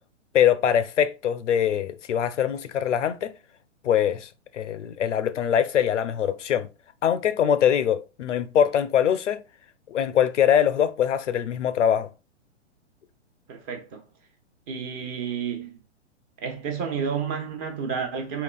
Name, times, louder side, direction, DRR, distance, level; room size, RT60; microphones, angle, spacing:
voice 1, 0.3-3.3 3.8-4.3 4.5-6.7 7.0-9.4 9.9-12.1, left 9 dB, 85° left, 0.5 m, -23 dB
voice 2, 13.5-14.0 14.7-15.8 16.4-18.4, right 6 dB, 30° right, 0.7 m, -30 dB
3.7 x 2.3 x 2.3 m
hypercardioid pair, 115°, 36 cm